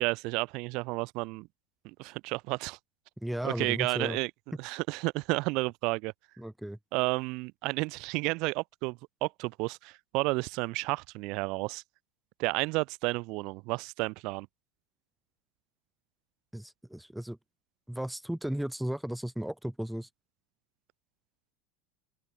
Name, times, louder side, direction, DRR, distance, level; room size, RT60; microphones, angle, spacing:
voice 1, 0.0-1.5 1.8-2.8 3.4-4.3 4.6-6.1 6.9-11.8 12.4-14.5, right 25 dB, 60° right, 5.2 m, -31 dB
voice 2, 3.2-4.2 6.4-6.8 16.5-17.4 17.9-20.1, right 1 dB, 5° right, 6.8 m, -35 dB
open air
hypercardioid pair, 100°, 0 cm